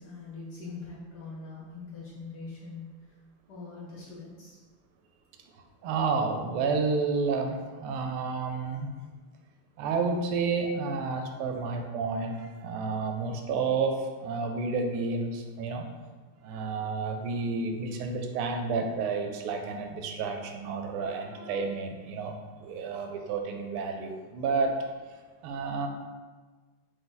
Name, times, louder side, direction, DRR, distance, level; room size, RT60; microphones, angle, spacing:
voice 1, 0.0-2.9 3.5-4.6, left 4 dB, 65° left, -5 dB, 1.0 m, -42 dB
voice 2, 5.8-8.9 9.8-15.8 16.4-24.7 25.4-25.9, right 4 dB, 85° right, 4 dB, 1.5 m, -30 dB
4.8 x 2.5 x 3.8 m, 1.3 s
omnidirectional pair, 2.4 m